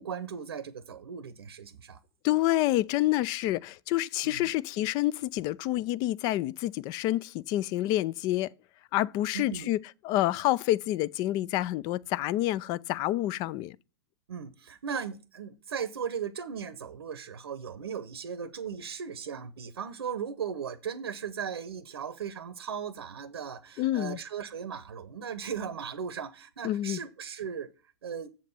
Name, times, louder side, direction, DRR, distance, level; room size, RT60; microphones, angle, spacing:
voice 1, 0.0-2.0 4.2-4.5 9.3-9.7 14.3-27.7 28.0-28.3, right 7 dB, 70° right, 0.7 m, -37 dB
voice 2, 2.2-8.5 8.9-9.8 10.0-13.8 23.8-24.2 26.6-27.0, left 15 dB, 30° left, 0.3 m, -28 dB
7.4 x 7.2 x 4.3 m
figure-of-eight pair, 105°, 14 cm